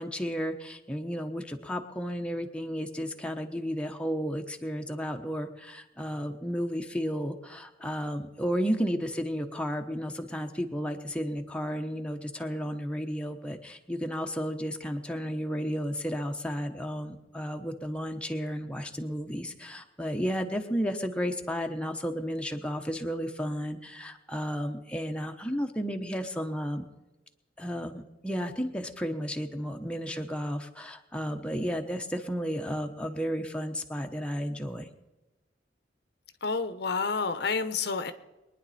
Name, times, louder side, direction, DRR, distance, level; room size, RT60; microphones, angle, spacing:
voice 1, 0.0-26.8 27.6-34.9, equal, 5° left, 3 dB, 1.0 m, -33 dB
voice 2, 36.4-38.1, left 4 dB, 65° left, 11 dB, 1.0 m, -29 dB
23.5 x 10.0 x 4.3 m, 1.0 s
head